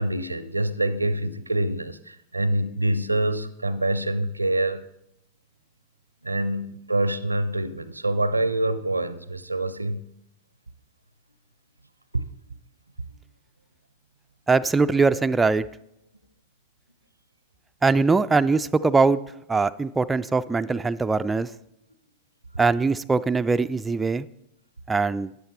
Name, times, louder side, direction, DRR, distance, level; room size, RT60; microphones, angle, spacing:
voice 1, 0.0-4.8 6.2-10.0 12.1-12.2, right 1 dB, 85° right, 0.5 m, -26 dB
voice 2, 14.5-15.7 17.8-19.2 19.5-21.5 22.6-24.3 24.9-25.3, right 4 dB, 10° right, 0.3 m, -21 dB
13.0 x 9.4 x 4.3 m
figure-of-eight pair, 90°, 0 cm